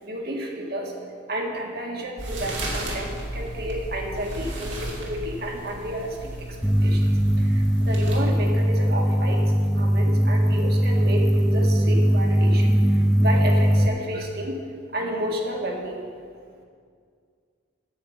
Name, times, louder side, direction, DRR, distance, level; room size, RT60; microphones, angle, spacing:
voice 1, 0.0-9.4 9.8-14.6 14.9-16.0, equal, 55° right, 0 dB, 1.8 m, -31 dB
sound 1, 2.2-8.2, right 1 dB, 70° right, 2.5 m, -34 dB
sound 2, 6.6-13.9, equal, 5° right, 0.5 m, -20 dB
10.0 x 7.6 x 7.9 m, 2.1 s
head